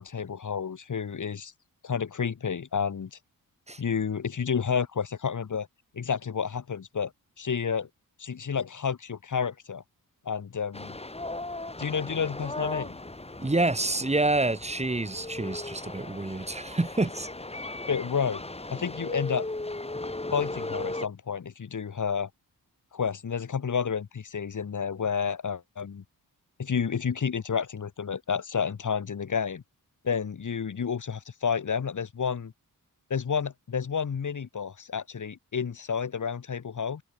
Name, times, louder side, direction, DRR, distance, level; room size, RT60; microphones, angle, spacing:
voice 1, 0.0-1.5 1.8-3.2 3.8-5.7 5.9-7.1 7.4-7.9 8.2-9.8 10.3-10.9 11.8-12.9 17.9-18.4 18.7-19.5 20.3-22.3 22.9-26.0 26.6-29.6 30.0-32.5 33.1-37.0, left 6 dB, 55° left, 3.6 m, -30 dB
sound 1, 10.7-21.1, left 2 dB, 15° left, 7.5 m, -37 dB
voice 2, 13.4-17.3, right 2 dB, 20° right, 5.8 m, -27 dB
wide cardioid pair, 125°, 36 cm